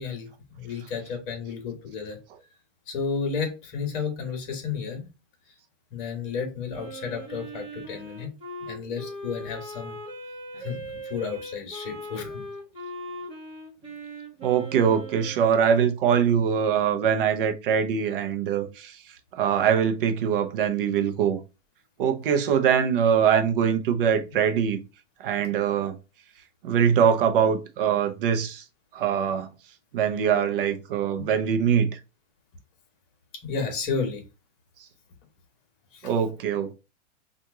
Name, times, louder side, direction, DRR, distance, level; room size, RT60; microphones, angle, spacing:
voice 1, 0.0-2.2 2.9-5.1 5.9-8.3 8.7-10.0 10.6-12.5 26.8-26.9 31.2-31.3 33.4-34.2 35.9-36.1, left 5 dB, 40° left, 1.4 m, -32 dB
Wind instrument woodwind instrument, 6.7-15.6, right 1 dB, 15° right, 1.2 m, -39 dB
voice 2, 14.4-19.0 19.4-21.4 22.0-24.8 25.2-26.0 26.6-28.6 28.9-29.5 29.9-31.9 36.0-36.7, right 8 dB, 45° right, 0.7 m, -23 dB
2.9 x 2.5 x 3.5 m
hypercardioid pair, 150°, 37 cm